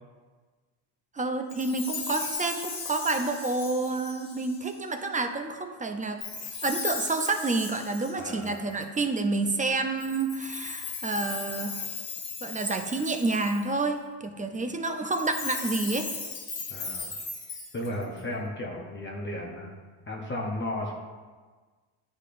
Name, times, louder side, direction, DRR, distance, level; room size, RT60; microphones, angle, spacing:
voice 1, 1.1-6.2 6.6-11.8 12.4-16.1, right 3 dB, 20° right, 5 dB, 0.3 m, -29 dB
Chime, 1.5-4.8 6.2-9.0 10.0-13.8 15.1-18.2, left 5 dB, 45° left, 1.2 m, -37 dB
voice 2, 8.2-8.6 14.4-14.5 16.7-17.1 17.7-19.7 20.1-20.9, left 1 dB, 25° left, -1 dB, 0.7 m, -34 dB
10.0 x 5.0 x 2.5 m, 1.4 s
cardioid pair, 130°, 48 cm